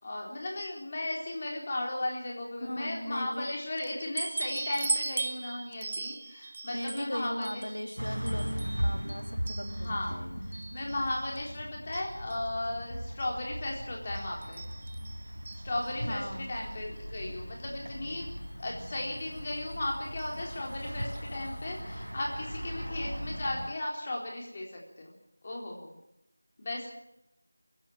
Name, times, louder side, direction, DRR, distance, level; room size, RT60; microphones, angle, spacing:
voice 1, 0.0-7.7 9.7-10.1 10.5-14.6 15.6-18.3 18.6-25.2 25.4-25.9 26.6-26.9, left 1 dB, 25° left, -1 dB, 4.0 m, -36 dB
voice 2, 2.6-3.5 6.7-8.5 8.8-10.5 16.1-16.5, equal, 85° left, 5 dB, 3.1 m, -38 dB
sound 1, 3.8-10.1 10.5-11.5 11.9-12.5 13.2-13.3 13.6-13.7 14.1-16.1 17.1-17.2 17.6-17.7 18.9-19.1 20.2-20.4 20.7-20.8 21.1-21.2, right 3 dB, 25° right, 0.7 m, -39 dB
sound 2, 8.0-23.7, equal, 85° right, 4.3 m, -38 dB
23.0 x 16.0 x 9.0 m, 0.84 s
figure-of-eight pair, 170°, 0 cm